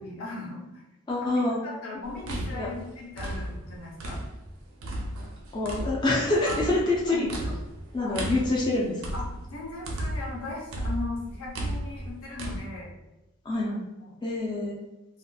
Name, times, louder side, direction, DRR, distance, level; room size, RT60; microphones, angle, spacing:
voice 1, 0.0-0.6 1.2-4.2 6.5-6.6 7.1-7.5 8.0-8.4 9.1-9.2 9.5-12.9 14.0-14.1, left 2 dB, 80° left, -3 dB, 0.8 m, -38 dB
voice 2, 1.1-1.6 2.5-2.7 5.5-7.3 7.9-9.0 13.5-13.8 14.2-14.8, left 2 dB, 20° left, -4 dB, 0.3 m, -26 dB
sound 1, 2.0-4.5 4.8-10.4 10.7-12.6, right 1 dB, 75° right, 0.5 m, -34 dB
2.7 x 2.4 x 2.2 m, 1.0 s
head